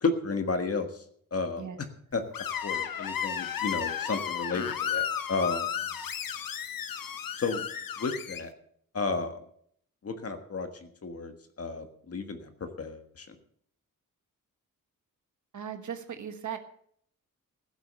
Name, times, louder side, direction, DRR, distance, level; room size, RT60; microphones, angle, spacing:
voice 1, 0.0-1.0 1.3-1.7 2.1-2.2 2.6-5.7 7.4-7.7 8.0-8.5 8.9-9.4 10.0-12.5 12.8-13.4, left 4 dB, 45° left, 7 dB, 1.5 m, -32 dB
Screech, 2.3-8.4, left 9 dB, 85° left, 1.0 m, -33 dB
voice 2, 15.5-16.6, right 8 dB, 60° right, 7 dB, 1.4 m, -37 dB
15.5 x 8.1 x 6.8 m, 0.65 s
wide cardioid pair, 175°, 34 cm